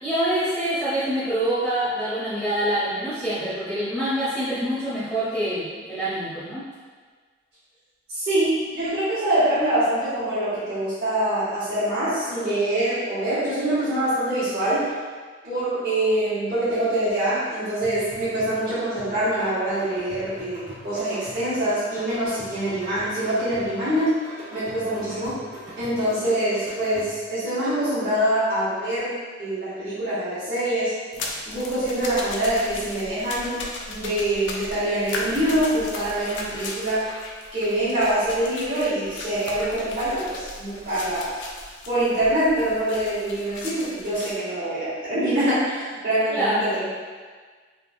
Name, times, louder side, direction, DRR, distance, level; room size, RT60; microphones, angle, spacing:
voice 1, 0.0-6.6 46.3-46.6, right 1 dB, 5° right, -14 dB, 0.7 m, -25 dB
voice 2, 8.1-14.9 15.4-24.2 24.5-25.3 25.8-29.1 29.4-30.9 31.4-37.0 37.5-41.3 41.9-46.9, right 1 dB, 50° right, -18 dB, 1.4 m, -24 dB
sound 1, 17.8-27.4, right 1 dB, 70° right, 1.4 m, -42 dB
sound 2, 31.1-44.4, left 3 dB, 70° left, 0.4 m, -37 dB
3.5 x 2.7 x 2.5 m, 1.5 s
head